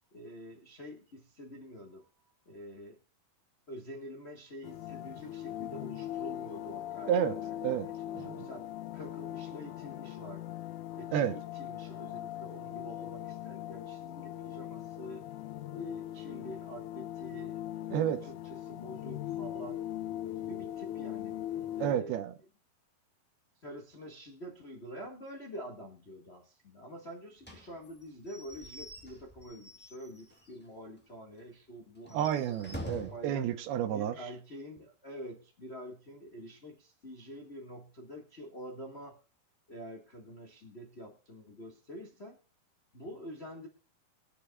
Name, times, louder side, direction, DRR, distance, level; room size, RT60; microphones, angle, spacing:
voice 1, 0.1-2.1 2.4-3.0 3.7-8.7 8.9-10.6 11.0-15.3 15.7-17.9 18.2-19.8 20.4-21.3 21.7-22.2 23.6-32.3 32.8-33.5 33.9-39.2 39.7-42.4 42.9-43.7, equal, 55° left, 0 dB, 0.6 m, -47 dB
sound 1, 4.6-21.9, left 12 dB, 75° left, 1.8 m, -40 dB
voice 2, 8.1-8.5 11.1-11.3 17.9-18.2 21.8-22.3 32.1-34.3, right 10 dB, 85° right, 9 dB, 2.9 m, -30 dB
Slam / Squeak / Wood, 27.4-30.6 31.0-31.1 31.4-31.5 32.0-33.3, equal, 15° left, 0.4 m, -46 dB
23.5 x 8.5 x 2.4 m, 0.33 s
omnidirectional pair, 4.4 m